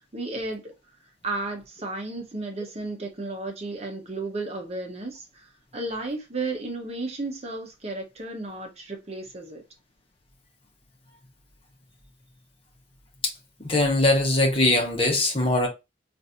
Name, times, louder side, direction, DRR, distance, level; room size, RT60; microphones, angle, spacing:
voice 1, 0.1-0.7 1.2-9.6, right 2 dB, 35° right, 0.9 m, -33 dB
voice 2, 13.6-15.7, left 2 dB, 30° left, 1.1 m, -21 dB
3.9 x 2.6 x 2.8 m
head